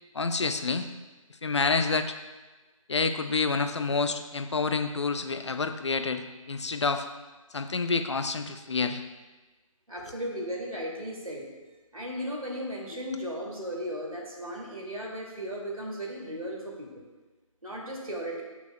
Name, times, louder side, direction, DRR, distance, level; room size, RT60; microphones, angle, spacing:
voice 1, 0.1-0.9 1.4-2.1 2.9-7.1 7.5-9.0, left 4 dB, 55° left, 8 dB, 0.6 m, -28 dB
voice 2, 9.9-11.5 11.9-17.1 17.6-18.4, equal, 80° right, -2 dB, 2.3 m, -36 dB
12.5 x 6.2 x 2.2 m, 1.2 s
figure-of-eight pair, 150°, 18 cm